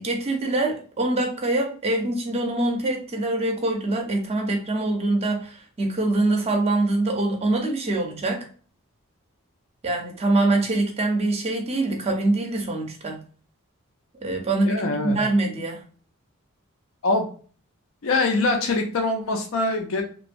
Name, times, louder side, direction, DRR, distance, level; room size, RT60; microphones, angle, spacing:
voice 1, 0.0-8.5 9.8-13.2 14.2-15.8, right 2 dB, 30° right, 2 dB, 0.5 m, -24 dB
voice 2, 14.7-15.2 17.0-17.3 18.0-20.0, left 2 dB, 65° left, 3 dB, 0.5 m, -23 dB
2.9 x 2.2 x 2.5 m, 0.41 s
head